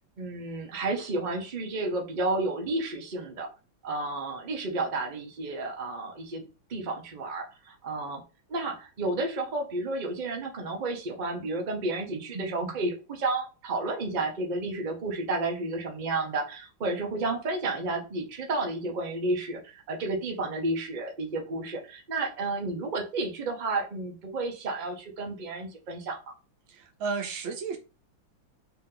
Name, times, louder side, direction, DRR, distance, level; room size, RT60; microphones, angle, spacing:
voice 1, 0.2-3.5 3.8-6.4 6.7-8.2 8.5-26.3, right 2 dB, 35° right, 2 dB, 0.7 m, -31 dB
voice 2, 26.7-27.8, right 5 dB, 85° right, 4 dB, 1.8 m, -33 dB
4.1 x 2.9 x 3.8 m, 0.31 s
omnidirectional pair, 2.2 m